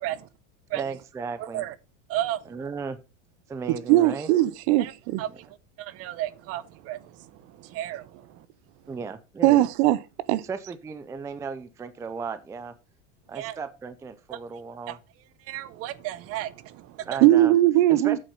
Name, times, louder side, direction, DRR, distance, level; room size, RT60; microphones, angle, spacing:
voice 1, 0.7-1.6 2.5-3.0 3.5-4.3 5.3-5.4 8.9-9.7 10.4-12.7 13.3-15.0 17.1-17.5 17.9-18.2, right 5 dB, 10° right, 0.4 m, -35 dB
voice 2, 1.4-1.7 2.1-2.4 4.8-4.9 5.2-5.5 5.8-8.5 13.3-13.6 14.9-15.0 15.5-17.1, right 13 dB, 40° right, 0.8 m, -33 dB
voice 3, 3.9-5.2 9.4-10.0 10.3-10.4 17.2-18.2, right 15 dB, 60° right, 0.9 m, -19 dB
8.5 x 6.7 x 5.4 m
supercardioid pair, 150°, 37 cm